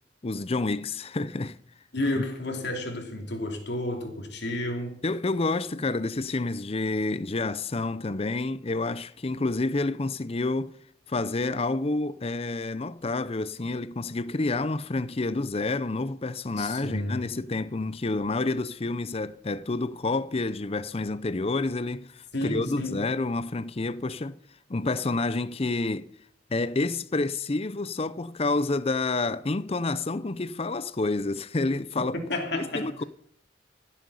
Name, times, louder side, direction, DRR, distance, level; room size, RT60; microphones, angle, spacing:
voice 1, 0.2-1.6 2.2-2.3 5.0-10.7 11.1-24.4 24.7-26.1 26.5-32.2 32.5-33.0, left 3 dB, 30° left, 0.6 m, -29 dB
voice 2, 1.9-5.0 16.6-17.4 22.3-23.0 32.3-32.9, left 1 dB, 60° left, 2.9 m, -31 dB
15.5 x 7.8 x 7.0 m
head